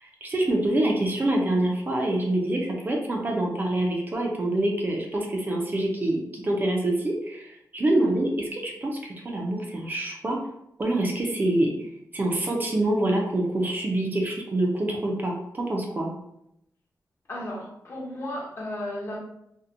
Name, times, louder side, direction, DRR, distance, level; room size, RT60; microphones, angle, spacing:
voice 1, 0.0-10.4 10.8-11.7 12.1-16.1, right 1 dB, 30° right, 0 dB, 0.4 m, -26 dB
voice 2, 7.9-8.2 17.3-19.2, left 1 dB, 40° left, -2 dB, 0.6 m, -35 dB
2.6 x 2.1 x 2.5 m, 0.78 s
wide cardioid pair, 175°, 7 cm